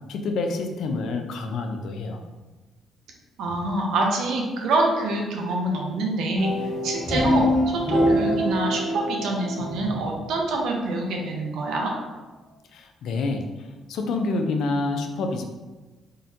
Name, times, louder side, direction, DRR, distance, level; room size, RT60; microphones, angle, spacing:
voice 1, 0.1-2.2 12.7-15.4, left 3 dB, 80° left, 4 dB, 0.3 m, -28 dB
voice 2, 3.4-11.9, right 2 dB, 85° right, 0 dB, 0.6 m, -26 dB
sound 1, 6.4-10.6, equal, 30° left, 1.4 m, -25 dB
3.7 x 2.1 x 2.6 m, 1.2 s
cardioid pair, 90°, 0 cm